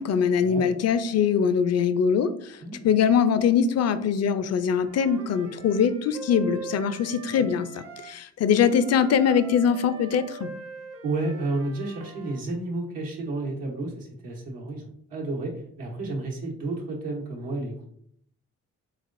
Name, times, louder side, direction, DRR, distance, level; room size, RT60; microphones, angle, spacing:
voice 1, 0.0-2.6 2.8-7.7 8.0-10.5, left 7 dB, 50° left, 13 dB, 0.4 m, -22 dB
voice 2, 2.6-2.9 7.0-7.5 11.0-17.9, right 2 dB, 85° right, -2 dB, 1.0 m, -32 dB
Wind instrument woodwind instrument, 4.8-8.1 8.6-12.4, right 4 dB, 45° right, 0.7 m, -42 dB
3.8 x 3.2 x 2.5 m, 0.67 s
supercardioid pair, 40°, 34 cm